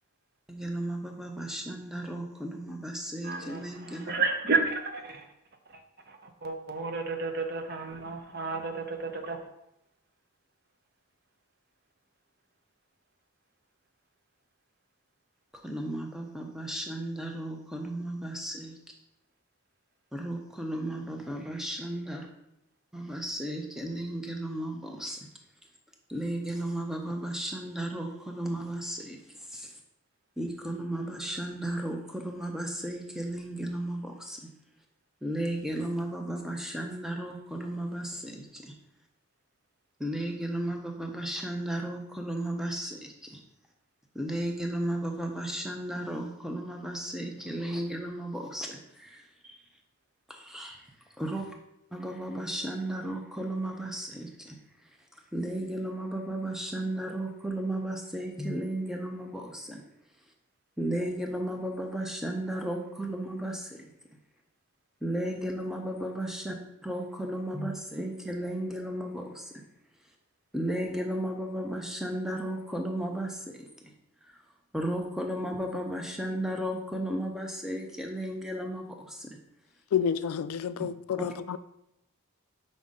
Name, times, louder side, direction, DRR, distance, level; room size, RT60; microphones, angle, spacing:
voice 1, 0.5-4.1 15.6-18.7 20.1-22.3 22.9-25.2 26.1-29.2 29.5-29.7 30.4-34.4 35.2-38.7 40.0-43.4 44.1-49.6 50.3-50.8 51.2-51.5 51.9-54.6 55.3-59.8 60.8-63.8 65.0-66.5 66.8-69.4 70.5-73.6 74.7-79.3 81.2-81.3, right 1 dB, ahead, 0.6 m, -34 dB
voice 2, 3.2-5.2 6.1-9.4, right 4 dB, 45° right, 0.8 m, -32 dB
voice 3, 79.9-81.6, left 8 dB, 80° left, 0.3 m, -29 dB
5.6 x 5.2 x 3.7 m
head